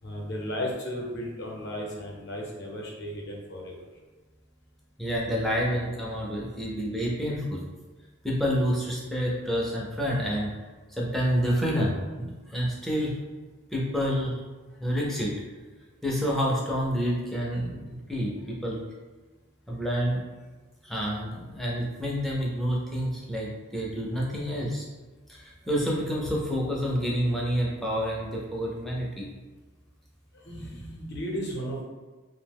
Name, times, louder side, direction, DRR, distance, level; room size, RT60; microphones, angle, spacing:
voice 1, 0.0-3.8 30.3-31.8, equal, 50° left, -2 dB, 0.6 m, -35 dB
voice 2, 5.0-7.6 8.2-10.5 11.0-13.1 13.7-14.4 14.8-15.3 16.0-18.8 19.7-20.2 20.8-24.9 25.3-29.3, equal, ahead, -4 dB, 0.4 m, -28 dB
2.7 x 2.1 x 3.4 m, 1.3 s
head